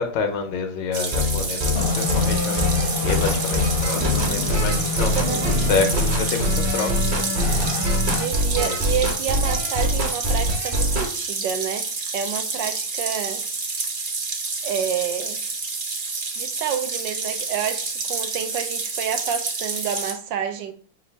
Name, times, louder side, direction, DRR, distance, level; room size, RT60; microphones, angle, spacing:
voice 1, 0.0-5.3 5.7-7.9 8.6-9.1, left 5 dB, 75° left, 1.3 m, -28 dB
sound 1, 0.9-20.1, right 4 dB, 60° right, 0.5 m, -29 dB
sound 2, 1.1-11.1, left 1 dB, 35° right, 0.8 m, -24 dB
sound 3, 1.7-8.2, left 4 dB, 50° left, 0.8 m, -27 dB
voice 2, 5.3-5.6 8.1-11.9 12.1-13.4 14.6-15.4 16.4-20.7, right 8 dB, 80° right, 1.3 m, -29 dB
6.2 x 2.5 x 3.3 m
omnidirectional pair, 2.0 m